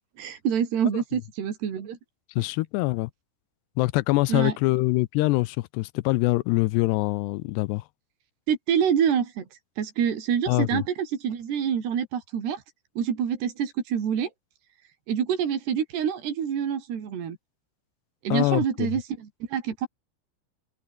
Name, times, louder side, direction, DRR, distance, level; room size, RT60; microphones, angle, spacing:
voice 1, 0.2-2.0 4.3-4.5 8.5-9.5 9.8-12.6 13.0-14.3 15.1-17.4 18.2-19.9, right 8 dB, 75° right, 5.6 m, -26 dB
voice 2, 2.4-3.1 3.8-7.8 10.5-10.8 18.3-18.9, left 21 dB, 85° left, 2.8 m, -24 dB
omnidirectional pair, 4.8 m